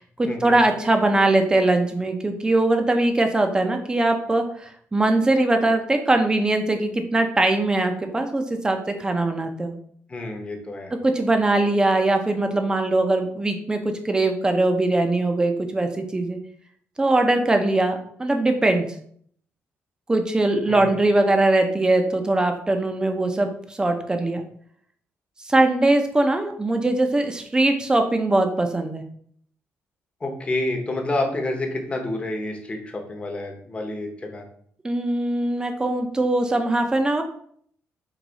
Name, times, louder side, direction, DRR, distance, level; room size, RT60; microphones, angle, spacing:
voice 1, 0.0-9.8 11.0-16.4 17.0-18.9 20.1-24.4 25.4-29.0 34.8-37.2, right 2 dB, 15° right, 5 dB, 0.6 m, -21 dB
voice 2, 10.1-10.9 20.7-20.9 30.2-34.4, left 2 dB, 25° left, 2 dB, 0.9 m, -29 dB
4.7 x 2.6 x 3.9 m, 0.62 s
cardioid pair, 120°, 5 cm